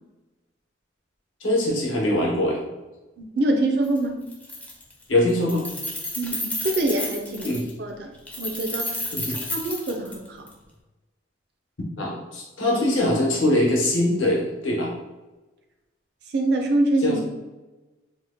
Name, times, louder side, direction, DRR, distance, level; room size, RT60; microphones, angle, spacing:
voice 1, 1.4-2.6 5.1-5.7 7.4-7.6 9.1-9.4 12.0-14.9 17.0-17.2, left 1 dB, 80° left, -3 dB, 0.9 m, -22 dB
voice 2, 3.2-4.2 6.2-8.1 8.4-9.0 9.3-10.5 16.3-17.2, right 2 dB, 55° right, 3 dB, 0.4 m, -25 dB
Keys jangling, 3.8-4.0 4.3-5.0 5.3-7.7 8.3-10.5, left 1 dB, 5° left, 0.4 m, -31 dB
2.9 x 2.1 x 3.4 m, 1.1 s
head